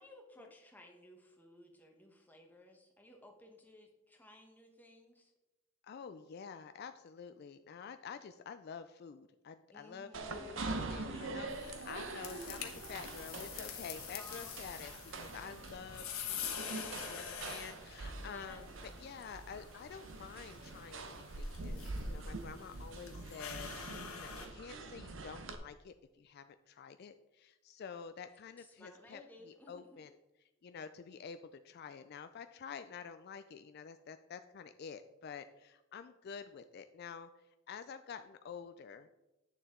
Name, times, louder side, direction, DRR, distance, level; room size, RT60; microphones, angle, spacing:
voice 1, 0.0-5.3 9.7-11.9 14.2-14.9 15.4-15.5 18.2-18.7 19.2-19.5 28.6-29.8, left 1 dB, 10° left, 2 dB, 1.0 m, -58 dB
voice 2, 5.8-30.1 30.6-37.3 37.7-39.1, left 6 dB, 50° left, 10 dB, 0.3 m, -49 dB
sound 1, 10.1-25.5, right 2 dB, 60° right, 0.8 m, -44 dB
sound 2, 11.5-24.5, left 8 dB, 90° left, 1.2 m, -47 dB
9.1 x 6.8 x 3.7 m, 1.0 s
head